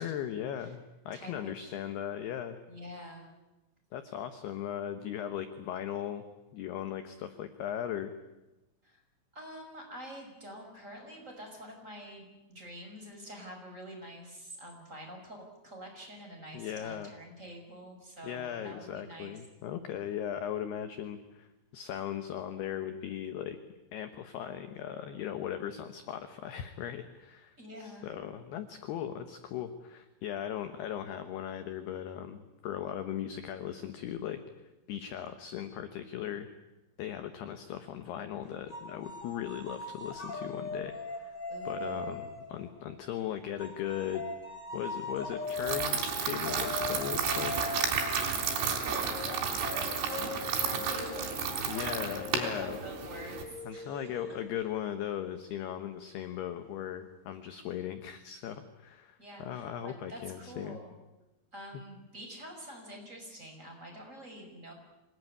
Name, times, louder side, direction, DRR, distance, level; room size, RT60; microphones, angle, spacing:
voice 1, 0.0-2.6 3.9-6.2 6.5-8.1 16.5-17.1 18.2-21.5 21.7-23.6 23.9-34.4 34.9-36.5 37.0-41.4 41.6-44.2 44.7-47.6 51.7-52.8 53.7-60.8, left 10 dB, 70° left, 9 dB, 2.6 m, -38 dB
voice 2, 1.1-1.7 2.7-3.3 8.8-9.0 9.3-19.4 27.6-28.1 41.5-42.2 48.3-52.1 52.6-54.1 59.2-60.9 61.5-64.7, equal, 15° right, 1 dB, 6.0 m, -47 dB
sound 1, 38.7-43.1 43.6-54.9, left 3 dB, 15° left, 4.3 m, -40 dB
sound 2, 45.5-53.4, right 6 dB, 70° right, 6.2 m, -32 dB
26.0 x 19.0 x 10.0 m, 1.0 s
omnidirectional pair, 5.7 m